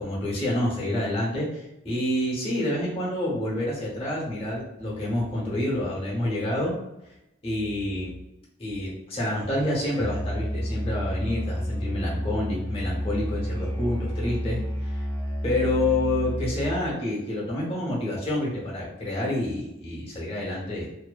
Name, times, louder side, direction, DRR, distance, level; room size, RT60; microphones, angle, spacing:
voice 1, 0.0-6.7 7.4-8.1 8.6-15.1 15.4-20.9, left 1 dB, 30° left, -5 dB, 0.8 m, -28 dB
Musical instrument, 9.9-17.0, equal, 15° left, 0.4 m, -30 dB
2.6 x 2.0 x 2.3 m, 0.89 s
head